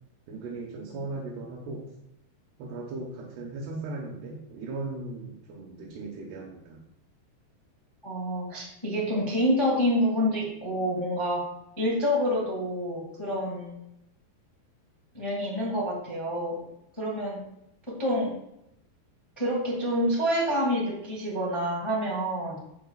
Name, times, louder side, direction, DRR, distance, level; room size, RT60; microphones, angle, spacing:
voice 1, 0.3-1.8 2.6-6.8, right 3 dB, 90° right, -3 dB, 3.4 m, -37 dB
voice 2, 8.0-11.4 11.8-13.8 15.1-16.6 17.0-17.4 17.9-18.3 19.4-22.6, equal, 10° left, -4 dB, 1.3 m, -27 dB
11.0 x 8.8 x 2.4 m, 0.81 s
omnidirectional pair, 4.5 m